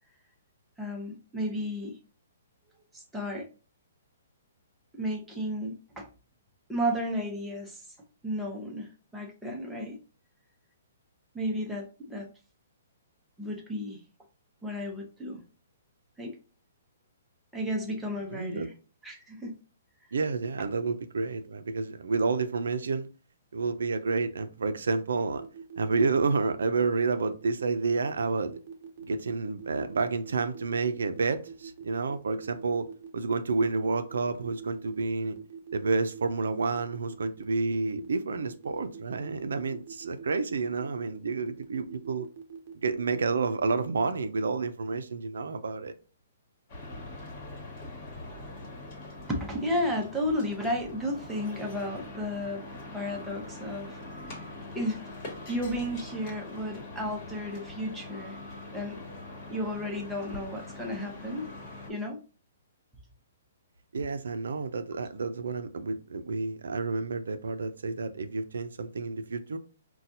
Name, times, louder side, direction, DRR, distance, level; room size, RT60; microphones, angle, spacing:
voice 1, 0.8-2.0 2.9-3.5 4.9-6.1 6.7-7.8 8.2-10.0 11.3-12.3 13.4-14.0 14.6-15.4 16.2-16.3 17.5-18.7 19.0-19.6 49.3-52.7 52.9-54.0 54.7-55.1 55.5-58.4 58.7-59.0 59.5-61.5 61.9-62.2, equal, 5° right, 0.7 m, -33 dB
voice 2, 18.3-18.7 20.1-23.1 23.5-25.4 25.8-28.6 29.0-32.9 33.1-35.4 35.7-42.3 42.8-45.9 63.9-69.6, right 4 dB, 85° right, 0.4 m, -29 dB
sound 1, 25.4-43.8, right 7 dB, 45° right, 0.7 m, -44 dB
sound 2, 46.7-61.9, left 2 dB, 35° left, 1.3 m, -43 dB
4.1 x 2.2 x 2.6 m
hypercardioid pair, 155°, 0 cm